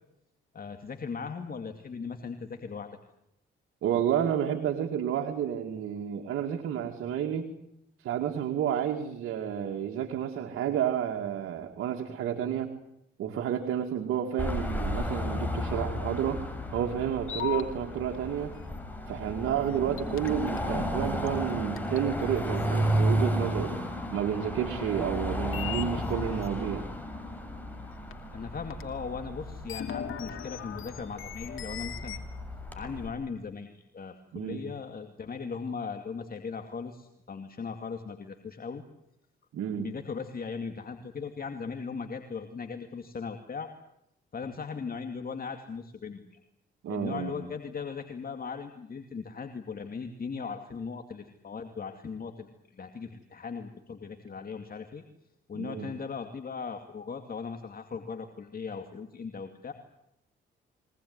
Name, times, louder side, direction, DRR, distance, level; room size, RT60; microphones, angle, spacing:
voice 1, 0.5-2.9 28.3-32.2 32.7-38.8 39.8-43.7 44.3-46.4 46.9-55.0 55.5-59.7, left 5 dB, 45° left, 6 dB, 2.4 m, -38 dB
voice 2, 3.8-7.5 8.0-12.7 13.2-16.4 16.7-18.5 19.1-23.8 24.1-26.8 34.3-34.7 39.5-39.9 46.8-47.3 55.5-55.9, right 9 dB, 85° right, 4 dB, 2.3 m, -30 dB
Car passing by / Traffic noise roadway noise / Engine, 14.4-33.1, equal, 10° left, 6.7 m, -33 dB
sound 1, 17.3-17.6 20.0-20.6 21.3-21.4 21.8-22.0 22.7-22.8 25.5-26.5 28.1-28.2 28.7-28.8 29.5-32.2, left 10 dB, 75° left, 2.9 m, -37 dB
23.5 x 19.5 x 9.6 m, 0.81 s
supercardioid pair, 65°, 21 cm